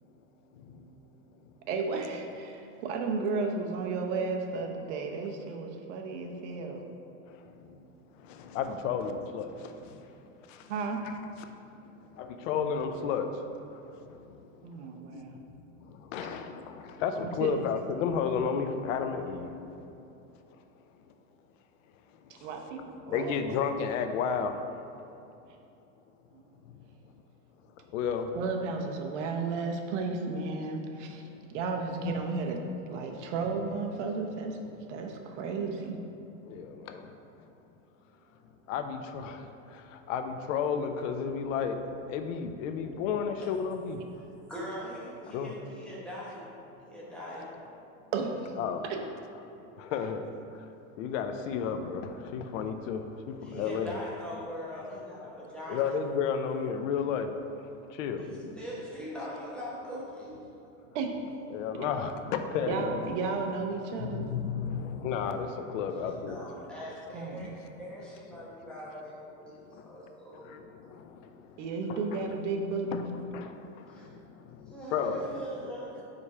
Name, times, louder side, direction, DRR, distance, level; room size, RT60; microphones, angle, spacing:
voice 1, 0.5-0.8 7.3-7.8 8.1-10.2 10.5-10.7 11.0-11.2 11.7-11.8 12.1-14.5 15.1-15.4 15.8-20.0 22.2-22.5 23.1-24.8 26.6-26.7 27.8-28.4 31.3-31.4 32.0-32.2 33.0-33.3 36.5-37.5 38.7-41.8 42.1-44.0 45.3-45.5 48.6-48.9 49.8-50.7 51.0-53.9 55.7-57.4 57.6-58.2 61.5-63.1 64.0-66.5 67.4-67.6 69.7-69.9 70.4-71.6 71.9-72.4 72.9-73.0 73.3-75.2, left 6 dB, 75° left, 8 dB, 0.6 m, -33 dB
voice 2, 1.7-6.9 10.7-11.1 14.6-15.4 16.2-16.4 17.2-17.5 22.3-23.4 26.3-26.4 28.3-32.6 32.9-34.6 34.9-36.0 48.1-48.5 60.9-61.1 62.6-64.3 67.1-67.5 71.6-73.0, right 4 dB, 65° right, 3 dB, 0.8 m, -33 dB
voice 3, 44.1-46.4 46.8-47.4 53.4-55.9 58.2-60.4 66.3-70.5 73.9-74.1 74.7-76.0, equal, 5° left, -8 dB, 0.9 m, -41 dB
5.1 x 4.2 x 4.7 m, 2.8 s
supercardioid pair, 165°, 39 cm